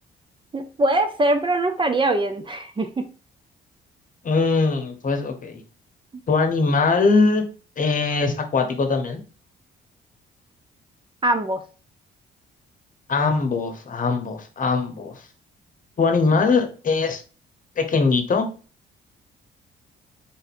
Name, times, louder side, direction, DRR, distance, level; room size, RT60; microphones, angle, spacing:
voice 1, 0.5-3.0 11.2-11.6, right 2 dB, 25° right, 7 dB, 0.5 m, -22 dB
voice 2, 4.2-5.6 6.3-7.5 7.8-9.2 13.1-15.2 16.0-17.2 17.8-18.5, left 4 dB, 40° left, 6 dB, 0.9 m, -21 dB
3.7 x 2.7 x 4.2 m, 0.36 s
cardioid pair, 90°, 20 cm